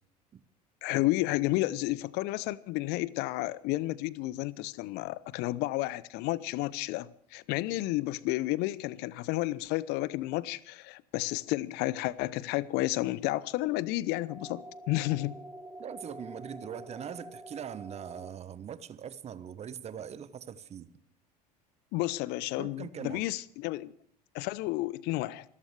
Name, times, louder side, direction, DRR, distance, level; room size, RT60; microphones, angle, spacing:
voice 1, 0.8-15.4 21.9-23.9 24.3-25.4, left 18 dB, 55° left, 0.8 m, -31 dB
sound 1, 14.3-18.3, right 1 dB, 5° right, 4.0 m, -47 dB
voice 2, 15.8-20.9 22.6-23.2, right 8 dB, 30° right, 1.2 m, -41 dB
26.5 x 14.5 x 3.3 m
figure-of-eight pair, 75°, 21 cm